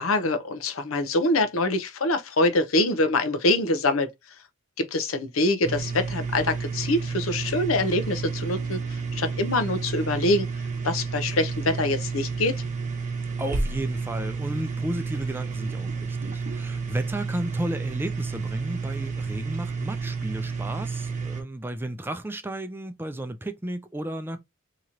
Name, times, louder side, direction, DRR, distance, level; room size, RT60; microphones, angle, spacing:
voice 1, 0.0-4.1 4.8-10.5 10.8-12.6, left 2 dB, 85° left, 0.7 m, -24 dB
sound 1, 5.6-21.4, right 4 dB, 35° right, 0.8 m, -31 dB
voice 2, 13.4-24.4, right 1 dB, 10° right, 0.4 m, -33 dB
2.9 x 2.9 x 3.7 m
head